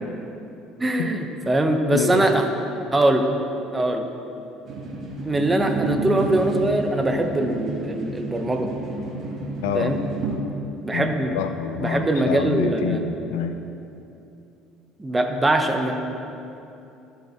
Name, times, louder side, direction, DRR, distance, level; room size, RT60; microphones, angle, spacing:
voice 1, 0.8-2.4 2.9-3.3 3.7-4.0 5.2-8.7 9.7-10.0 10.8-11.3 11.8-13.0 15.0-15.9, right 1 dB, 15° right, 4 dB, 1.0 m, -22 dB
voice 2, 1.9-2.3 9.6-10.0 10.9-13.6, left 7 dB, 85° left, 8 dB, 0.5 m, -27 dB
sound 1, 4.6-10.4, right 1 dB, 50° right, 1.6 m, -31 dB
13.5 x 5.6 x 4.5 m, 2.8 s
supercardioid pair, 90°, 0 cm